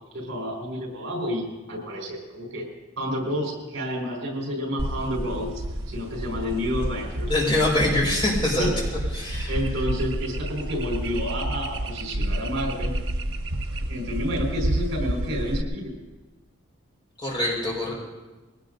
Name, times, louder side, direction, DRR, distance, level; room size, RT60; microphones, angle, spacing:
voice 1, 0.1-2.7 3.0-5.5 5.9-7.3 8.6-8.7 9.5-12.9 13.9-15.9, equal, 65° right, -1 dB, 4.8 m, -30 dB
sound 1, 4.8-15.6, right 1 dB, 85° right, 1.1 m, -30 dB
voice 2, 7.3-8.7 9.1-9.6 17.2-17.9, left 1 dB, 25° left, -4 dB, 4.9 m, -24 dB
22.0 x 17.5 x 2.7 m, 1.2 s
head